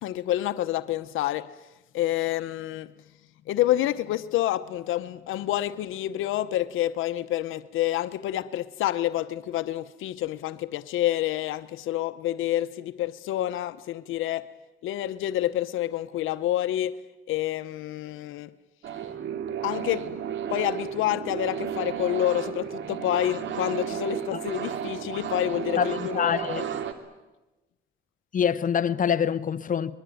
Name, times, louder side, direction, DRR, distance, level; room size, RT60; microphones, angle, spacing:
voice 1, 0.0-1.5 1.9-2.9 3.5-14.5 14.8-17.0 17.3-18.5 19.6-20.1 20.5-26.7, left 13 dB, 85° left, 0.9 m, -28 dB
sound 1, 18.8-26.9, right 8 dB, 70° right, 2.5 m, -33 dB
voice 2, 25.8-26.6 28.3-29.9, left 8 dB, 40° left, 1.0 m, -25 dB
23.0 x 22.0 x 9.2 m
cardioid pair, 90°, 20 cm